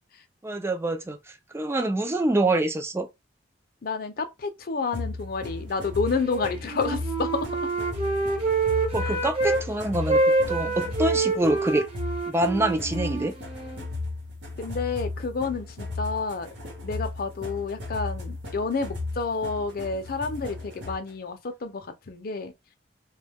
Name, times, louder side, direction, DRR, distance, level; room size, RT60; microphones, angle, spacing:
voice 1, 0.4-1.2 1.5-3.1 8.9-11.8 12.3-13.3, right 1 dB, 15° right, 0.4 m, -25 dB
voice 2, 3.8-7.5 9.0-9.1 10.7-10.9 14.6-16.5 16.8-22.5, left 4 dB, 55° left, 0.5 m, -30 dB
sound 1, 4.9-21.1, left 2 dB, 75° right, 0.9 m, -35 dB
Wind instrument woodwind instrument, 6.2-9.6 9.9-13.8, right 3 dB, 35° right, 1.0 m, -27 dB
2.2 x 2.2 x 3.4 m
head